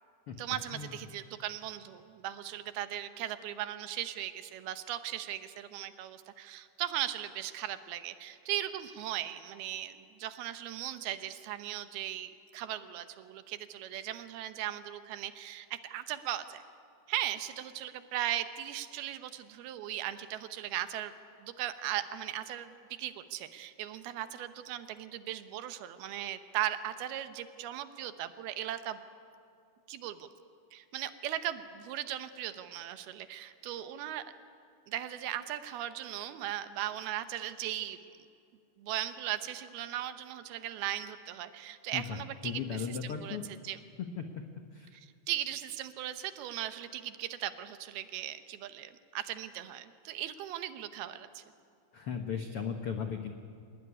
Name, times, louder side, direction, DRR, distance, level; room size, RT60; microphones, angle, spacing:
voice 1, 0.4-16.6 17.1-21.1 21.4-29.0 29.9-30.3 30.7-34.2 34.9-38.0 38.8-43.4 43.6-43.8 44.9-51.4, right 12 dB, 80° right, 11 dB, 2.9 m, -38 dB
voice 2, 42.4-43.4 44.2-44.3 44.7-44.9 51.9-53.3, left 7 dB, 85° left, 5 dB, 1.2 m, -36 dB
25.0 x 19.5 x 9.8 m, 2.4 s
omnidirectional pair, 4.5 m